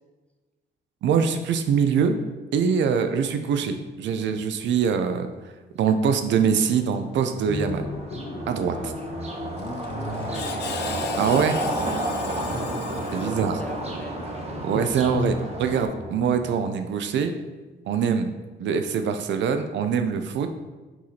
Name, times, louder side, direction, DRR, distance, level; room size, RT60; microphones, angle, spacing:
voice 1, 1.0-2.2 2.5-5.3 5.8-7.9 8.5-8.8 11.2-11.6 13.1-13.6 14.6-17.3 17.9-18.3 18.6-20.5, right 6 dB, 65° right, 7 dB, 0.4 m, -23 dB
sound 1, 6.7-6.8 7.4-15.9, right 1 dB, 30° right, 0.9 m, -31 dB
sound 2, 7.4-16.6, left 1 dB, 85° left, 1.5 m, -36 dB
voice 2, 8.6-9.1 9.8-11.0 12.3-12.8 13.2-15.1, left 1 dB, 5° left, 3 dB, 0.6 m, -41 dB
Screech, 9.6-13.9, left 8 dB, 60° left, 0.4 m, -38 dB
4.6 x 4.0 x 2.8 m, 1.3 s
cardioid pair, 90°, 20 cm